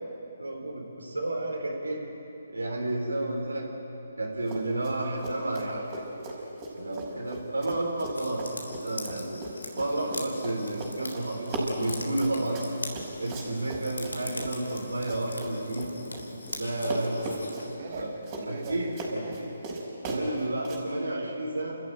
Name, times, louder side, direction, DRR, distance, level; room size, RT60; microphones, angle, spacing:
voice 1, 0.4-2.0 2.5-3.7 4.2-6.0 6.8-8.5 8.8-9.4 9.8-11.5 11.8-12.6 12.9-15.9 16.5-17.1 18.0-18.1 18.5-19.5 20.0-21.8, right 1 dB, 85° right, -1 dB, 4.2 m, -31 dB
Run, 4.4-5.0 5.2-16.6 16.8-20.8, right 2 dB, 25° right, 5.5 m, -38 dB
sound 1, 8.1-17.8, left 2 dB, 80° left, 3.7 m, -41 dB
voice 2, 16.8-19.4, right 2 dB, 50° right, 0 dB, 5.1 m, -41 dB
29.5 x 14.0 x 9.4 m, 2.9 s
figure-of-eight pair, 145°, 0 cm